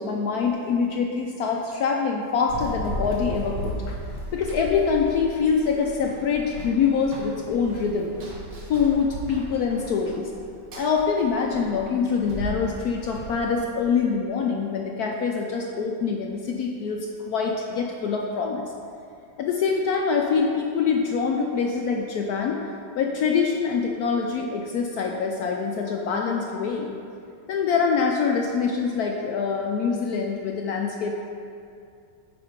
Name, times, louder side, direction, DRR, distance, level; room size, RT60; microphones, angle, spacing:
voice 1, 0.0-4.0 4.3-8.1 8.7-10.3 10.8-18.7 19.4-22.6 23.0-26.9 27.5-31.1, left 5 dB, 70° left, 1 dB, 0.9 m, -25 dB
Run, 2.5-13.9, right 1 dB, 65° right, 1.7 m, -36 dB
9.5 x 4.3 x 5.0 m, 2.4 s
omnidirectional pair, 2.1 m